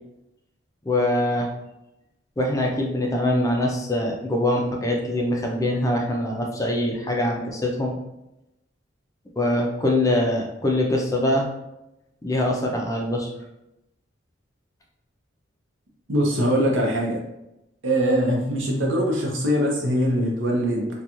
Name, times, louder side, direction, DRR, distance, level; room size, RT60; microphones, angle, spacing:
voice 1, 0.8-1.5 2.4-8.0 9.4-11.5 12.2-13.3, left 1 dB, 15° left, 0 dB, 0.4 m, -23 dB
voice 2, 16.1-17.2 17.8-20.9, equal, 85° right, -1 dB, 0.7 m, -22 dB
2.9 x 2.2 x 2.5 m, 0.90 s
head